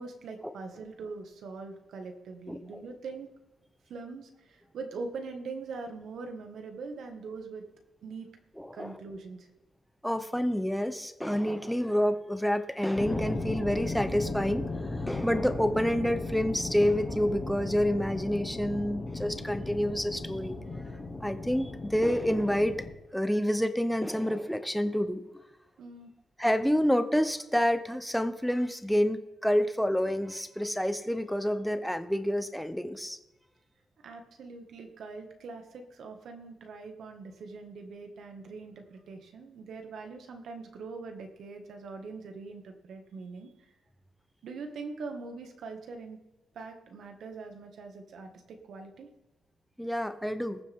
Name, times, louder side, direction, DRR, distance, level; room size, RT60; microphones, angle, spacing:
voice 1, 0.0-3.3 3.9-7.6 8.0-8.3 8.7-9.5 25.8-26.1 34.0-43.5 44.4-46.2 46.5-49.1, right 4 dB, 65° right, 5 dB, 2.0 m, -42 dB
voice 2, 8.6-8.9 10.0-14.6 14.9-20.5 21.2-22.7 23.1-25.3 26.4-33.2 49.8-50.6, equal, ahead, 10 dB, 0.9 m, -28 dB
sound 1, 13.0-22.9, left 2 dB, 25° left, 2.3 m, -36 dB
20.0 x 7.3 x 3.7 m, 1.0 s
cardioid pair, 130°, 0 cm